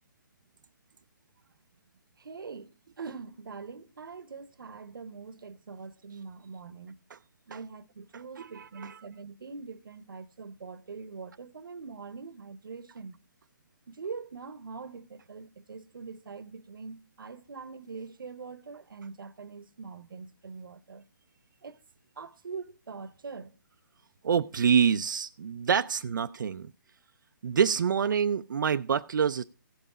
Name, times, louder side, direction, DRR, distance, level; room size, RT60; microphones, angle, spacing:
voice 1, 2.2-2.7 3.0-6.9 7.5-13.1 13.9-21.0 21.6-21.8 22.2-23.5, right 5 dB, 80° right, 0.9 m, -43 dB
voice 2, 8.1-9.0 24.2-26.7 27.4-29.4, right 7 dB, 65° right, 0.4 m, -27 dB
16.0 x 5.5 x 4.9 m
hypercardioid pair, 160°, 11 cm